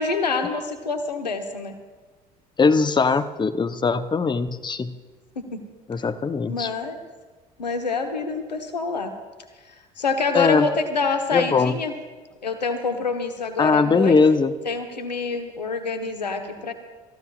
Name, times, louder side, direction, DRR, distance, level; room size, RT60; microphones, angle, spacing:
voice 1, 0.0-1.7 5.3-5.6 6.5-7.0 7.6-9.1 10.0-11.9 12.4-14.2 14.6-16.7, left 4 dB, 85° left, 7 dB, 1.2 m, -26 dB
voice 2, 2.6-4.9 5.9-6.7 10.3-10.7 11.3-11.7 13.6-14.5, left 4 dB, 20° left, 10 dB, 0.9 m, -20 dB
29.5 x 15.0 x 2.5 m, 1.3 s
figure-of-eight pair, 60°, 21 cm